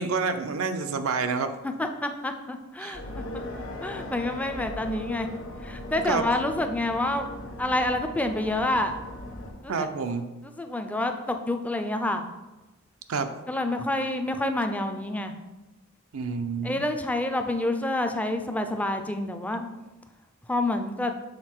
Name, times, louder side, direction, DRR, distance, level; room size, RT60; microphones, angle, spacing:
voice 1, 0.0-1.5 2.8-3.0 6.1-6.3 9.7-10.3 13.1-13.3 16.1-16.8, right 4 dB, 85° right, 8 dB, 0.5 m, -28 dB
voice 2, 1.6-3.0 3.3-3.4 3.8-5.3 5.6-7.3 7.6-8.9 9.6-9.9 10.6-12.2 13.5-15.3 16.6-19.6 20.5-21.1, left 1 dB, 5° left, 6 dB, 0.4 m, -28 dB
sound 1, 2.9-9.5, left 1 dB, 65° left, 1.1 m, -38 dB
6.6 x 3.8 x 4.4 m, 1.1 s
head